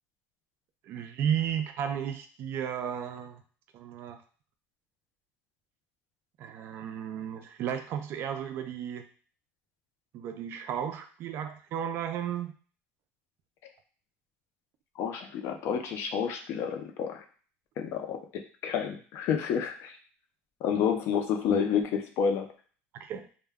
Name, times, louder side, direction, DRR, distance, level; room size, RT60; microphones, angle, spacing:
voice 1, 0.9-3.4 3.7-4.2 6.4-9.0 10.1-12.5 22.9-23.2, right 9 dB, 45° right, 7 dB, 0.3 m, -34 dB
voice 2, 15.0-17.2 17.8-20.0 20.6-22.5, left 7 dB, 55° left, 5 dB, 0.4 m, -29 dB
2.1 x 2.1 x 3.4 m, 0.41 s
cardioid pair, 145°, 5 cm